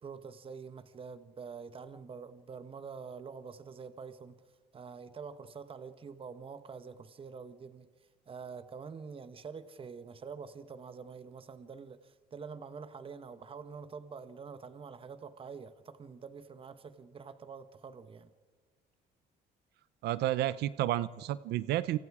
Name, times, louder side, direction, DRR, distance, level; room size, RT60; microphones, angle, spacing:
voice 1, 0.0-4.4 4.7-7.9 8.3-18.3, right 5 dB, 30° right, 1.3 m, -46 dB
voice 2, 20.0-22.0, right 14 dB, 80° right, 0.7 m, -31 dB
29.5 x 26.0 x 4.9 m
cardioid pair, 110°, 17 cm